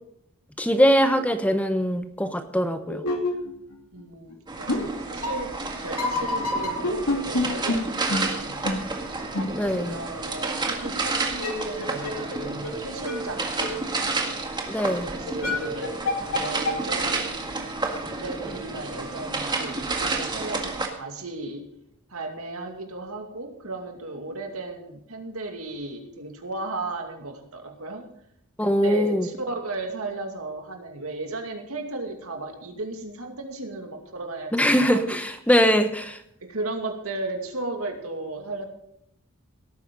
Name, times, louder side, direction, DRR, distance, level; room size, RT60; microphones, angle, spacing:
voice 1, 0.6-3.0 9.5-9.9 14.7-15.1 28.6-29.3 34.5-36.2, equal, 5° left, 8 dB, 0.9 m, -22 dB
sound 1, 0.7-0.8 1.1-1.3 1.7-1.8 2.5-4.0 4.3-4.4 4.7-4.8 5.2-5.3 6.0-7.4 7.7-7.8 8.1-8.2 8.6-8.7 9.3-9.4 11.3-12.4 12.6-12.7 13.0-13.2 13.6-13.7 14.3-14.4 14.9-15.0 15.3-16.4 16.6-16.7, left 2 dB, 90° left, 2.7 m, -27 dB
voice 2, 3.9-8.8 9.7-14.3 14.9-17.8 18.1-21.6 22.1-28.1 28.6-35.2 36.4-38.7, right 2 dB, 75° right, 4 dB, 2.4 m, -35 dB
sound 2, 4.5-20.9, right 3 dB, 20° right, 1.8 m, -30 dB
17.5 x 9.1 x 5.4 m, 0.73 s
head